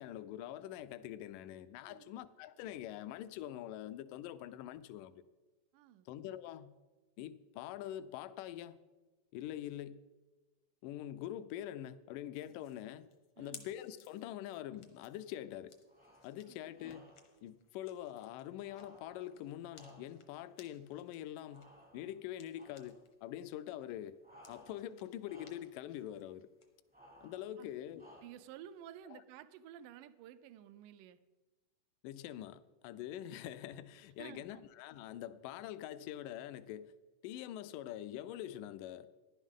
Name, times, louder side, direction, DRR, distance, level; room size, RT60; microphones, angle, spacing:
voice 1, 0.0-5.2 6.1-6.7 7.2-8.8 9.3-10.0 10.8-13.1 13.4-15.8 16.2-17.1 17.4-24.2 24.5-26.5 27.2-28.2 29.1-29.2 32.0-36.9 37.2-39.1, left 12 dB, 85° left, 2.1 m, -45 dB
voice 2, 5.7-6.1 13.4-13.7 16.5-16.6 27.6-27.7 28.2-31.2 34.2-34.6, right 10 dB, 85° right, 2.2 m, -53 dB
sound 1, 12.3-23.1 23.5-26.7, left 7 dB, 70° left, 1.2 m, -62 dB
sound 2, 15.8-16.4 16.7-17.4 18.6-20.4 21.5-22.2 22.5-23.0 24.2-25.0 25.2-25.8 26.9-27.5 28.0-28.6, equal, 15° right, 0.3 m, -60 dB
15.0 x 11.0 x 3.6 m
omnidirectional pair, 3.7 m